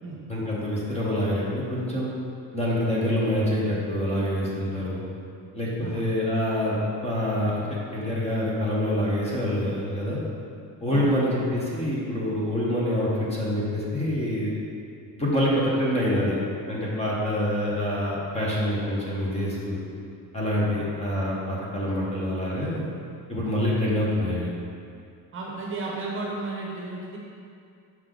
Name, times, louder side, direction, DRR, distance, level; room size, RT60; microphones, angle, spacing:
voice 1, 0.3-2.1 2.5-5.0 5.5-7.7 7.9-10.2 10.8-14.5 15.2-16.4 16.7-19.8 20.3-22.9 23.3-24.5, left 1 dB, 15° left, -6 dB, 1.1 m, -26 dB
voice 2, 10.9-11.2 20.7-20.9 25.3-27.2, right 3 dB, 35° right, -3 dB, 0.9 m, -33 dB
6.0 x 5.5 x 3.8 m, 2.4 s
cardioid pair, 165°, 37 cm